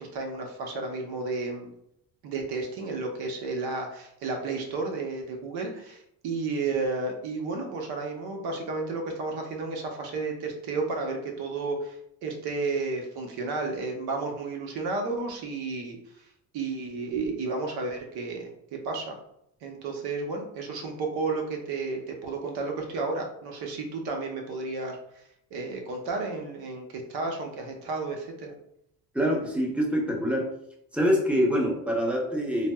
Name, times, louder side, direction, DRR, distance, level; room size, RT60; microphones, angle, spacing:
voice 1, 0.0-1.7 2.2-12.0 12.2-16.3 16.5-19.2 19.6-25.0 25.5-28.6, right 3 dB, 75° right, 2 dB, 0.8 m, -32 dB
voice 2, 29.1-30.5 30.9-32.7, equal, 5° right, -1 dB, 0.6 m, -25 dB
4.0 x 2.0 x 2.2 m, 0.76 s
cardioid pair, 110°, 38 cm